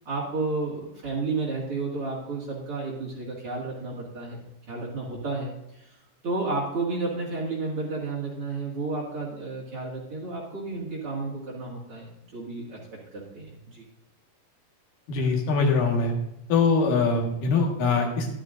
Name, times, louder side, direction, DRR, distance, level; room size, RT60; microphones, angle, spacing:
voice 1, 0.1-4.4 4.7-6.0 6.2-12.8 13.1-13.9, right 3 dB, 45° right, -4 dB, 2.7 m, -32 dB
voice 2, 15.1-16.1 16.5-18.3, left 4 dB, 70° left, 2 dB, 3.2 m, -23 dB
13.0 x 12.0 x 2.6 m, 0.85 s
omnidirectional pair, 4.1 m